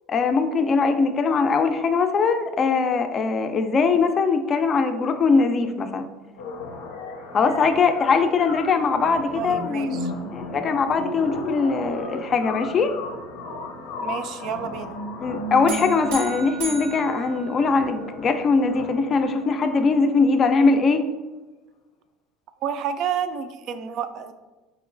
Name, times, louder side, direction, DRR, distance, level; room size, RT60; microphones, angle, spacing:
voice 1, 0.1-6.1 7.3-12.9 15.2-21.1, left 4 dB, 35° left, 7 dB, 0.4 m, -21 dB
sound 1, 6.4-20.4, left 1 dB, 90° left, 0.6 m, -35 dB
voice 2, 9.3-10.1 14.0-15.0 22.6-24.3, right 8 dB, 55° right, 10 dB, 0.3 m, -30 dB
sound 2, 15.7-18.1, right 4 dB, 85° right, 0.7 m, -35 dB
4.1 x 2.9 x 2.5 m, 1.2 s
supercardioid pair, 110°, 0 cm